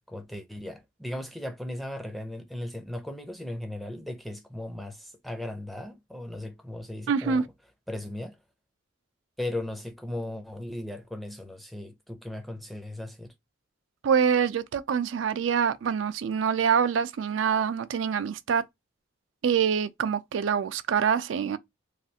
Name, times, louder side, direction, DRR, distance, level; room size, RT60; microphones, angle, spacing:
voice 1, 0.1-7.4 7.9-8.4 9.4-13.3, left 1 dB, ahead, 0.5 m, -37 dB
voice 2, 7.1-7.4 14.0-18.6 19.4-21.6, right 7 dB, 80° right, 0.4 m, -25 dB
3.2 x 2.4 x 2.7 m
head